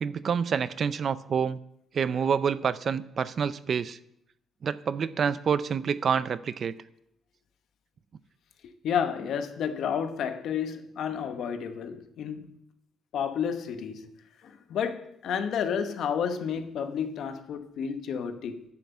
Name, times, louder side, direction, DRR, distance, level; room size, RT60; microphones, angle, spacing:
voice 1, 0.0-1.6 1.9-4.0 4.6-6.7, right 7 dB, 50° right, 0.4 m, -27 dB
voice 2, 8.8-12.6 13.1-14.1 14.4-18.6, left 7 dB, 70° left, 0.9 m, -31 dB
10.5 x 5.8 x 6.9 m
cardioid pair, 105°, 0 cm